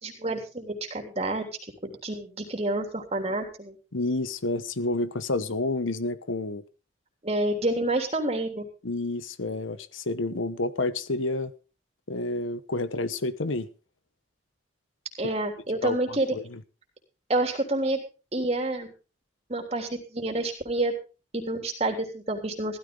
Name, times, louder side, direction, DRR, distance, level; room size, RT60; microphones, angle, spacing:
voice 1, 0.0-1.5 1.8-3.8 7.2-8.7 15.2-16.3 17.3-18.0 18.3-18.9 19.5-20.9 21.3-22.8, right 2 dB, 30° right, 3.3 m, -28 dB
voice 2, 3.9-6.6 8.8-11.5 12.1-13.7 15.2-15.4 15.8-16.6, left 2 dB, 85° left, 1.1 m, -29 dB
15.5 x 13.5 x 3.9 m
head